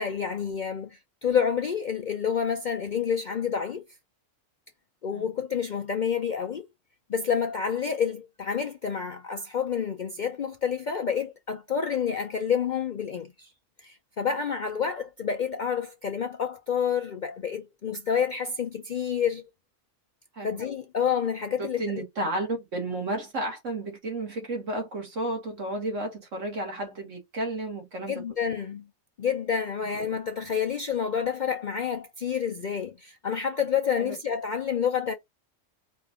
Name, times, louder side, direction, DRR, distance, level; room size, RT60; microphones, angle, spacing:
voice 1, 0.0-3.8 5.0-6.6 7.1-13.5 13.8-19.4 20.4-22.0 28.1-28.8 29.2-35.1, left 7 dB, 55° left, 0.5 m, -29 dB
voice 2, 21.6-28.2 34.0-34.2, right 2 dB, 70° right, 2.0 m, -32 dB
4.4 x 2.6 x 3.6 m
omnidirectional pair, 1.3 m